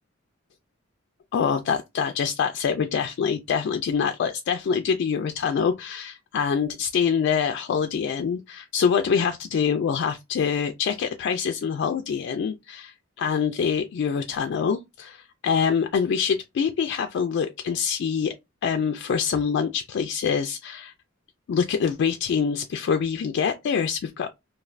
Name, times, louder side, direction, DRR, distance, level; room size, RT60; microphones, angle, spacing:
voice 1, 1.3-12.9 13.2-18.3 18.6-20.9 21.5-24.3, left 6 dB, 60° left, 0.3 m, -25 dB
2.4 x 2.3 x 3.1 m
head